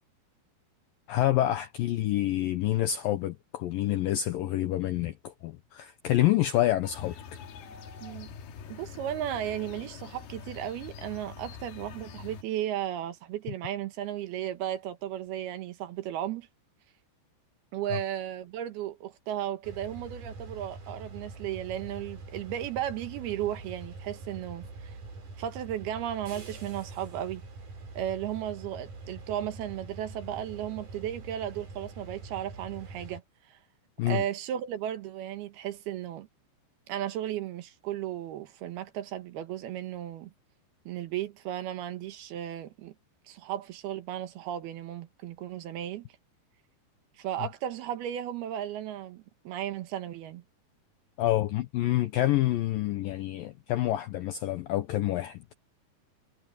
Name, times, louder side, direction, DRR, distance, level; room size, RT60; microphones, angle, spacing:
voice 1, 1.1-7.2 34.0-34.2 51.2-55.4, left 14 dB, 85° left, 2.0 m, -27 dB
sound 1, 6.8-12.4, left 6 dB, 65° left, 3.5 m, -45 dB
voice 2, 8.0-8.3 8.7-16.5 17.7-25.0 25.4-27.4 27.9-33.6 34.0-36.3 36.9-40.3 40.9-42.9 43.2-46.1 47.2-50.4, right 11 dB, 70° right, 2.9 m, -35 dB
sound 2, 19.6-33.2, right 3 dB, 45° right, 6.5 m, -44 dB
omnidirectional pair, 5.1 m